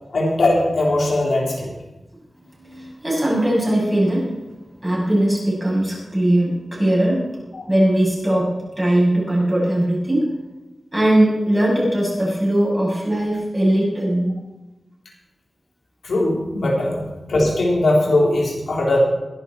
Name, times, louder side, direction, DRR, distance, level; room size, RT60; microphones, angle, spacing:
voice 1, 0.1-1.7 7.5-7.6 16.0-17.0 17.3-19.0, left 1 dB, 85° left, -2 dB, 3.6 m, -19 dB
voice 2, 2.4-4.3 4.8-7.2 7.7-10.3 10.9-14.3 16.6-16.7, right 1 dB, 15° right, -5 dB, 7.1 m, -20 dB
21.5 x 11.5 x 4.3 m, 1.1 s
wide cardioid pair, 105°, 0 cm